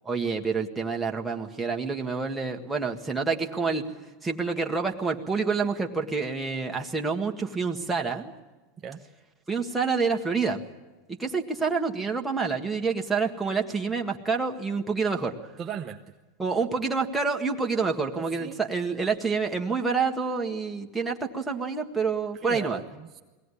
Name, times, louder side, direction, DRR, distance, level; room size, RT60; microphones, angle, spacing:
voice 1, 0.0-3.9 4.2-8.3 9.5-10.6 11.1-15.3 16.4-22.8, right 4 dB, 5° right, 0 dB, 1.8 m, -28 dB
voice 2, 15.6-16.0 18.2-18.6 22.4-23.2, right 8 dB, 30° right, 2 dB, 1.0 m, -38 dB
22.0 x 17.5 x 10.0 m, 1.2 s
supercardioid pair, 130°, 0 cm